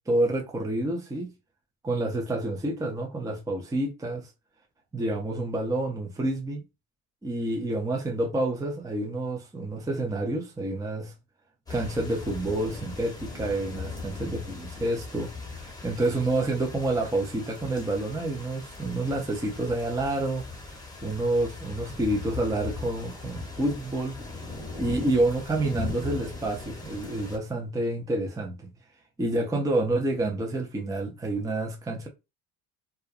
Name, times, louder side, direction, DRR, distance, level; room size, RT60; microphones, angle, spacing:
voice 1, 0.1-1.3 1.8-4.3 4.9-6.6 7.2-11.1 11.7-24.2 24.8-28.7 29.2-32.1, right 2 dB, 10° right, 0.6 m, -28 dB
sound 1, 11.7-27.4, left 3 dB, 10° left, 1.0 m, -39 dB
2.4 x 2.2 x 2.5 m
supercardioid pair, 75°, 46 cm